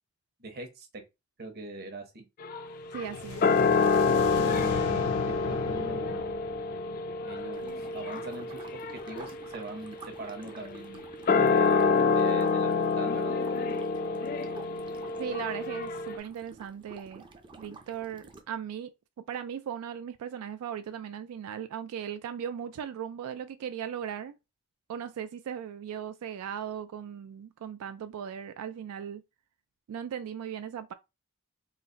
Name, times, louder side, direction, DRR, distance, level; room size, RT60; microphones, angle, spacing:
voice 1, 0.4-1.0 1.4-2.3 4.4-6.4 7.2-11.1 11.4-13.3, right 2 dB, 45° right, 1.0 m, -43 dB
sound 1, 2.4-16.2, left 4 dB, 40° left, 0.3 m, -28 dB
sound 2, 2.9-8.0, left 4 dB, 90° left, 0.5 m, -38 dB
voice 2, 2.9-3.6 15.2-17.3 17.6-24.4 24.9-29.2 29.9-30.9, right 8 dB, 85° right, 0.3 m, -38 dB
sound 3, 7.5-18.4, right 3 dB, 20° right, 0.5 m, -50 dB
3.8 x 2.1 x 3.9 m
head